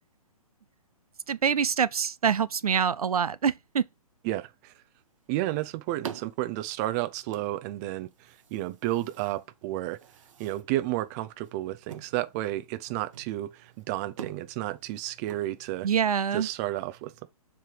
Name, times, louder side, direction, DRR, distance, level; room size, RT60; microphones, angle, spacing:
voice 1, 1.3-3.9 15.8-16.5, right 7 dB, 75° right, 0.4 m, -25 dB
voice 2, 4.2-4.7 5.3-10.0 10.4-15.9 16.3-17.3, right 15 dB, 25° right, 0.6 m, -32 dB
sound 1, 5.0-16.1, right 8 dB, 55° right, 1.0 m, -48 dB
7.3 x 3.5 x 4.8 m
figure-of-eight pair, 125°, 19 cm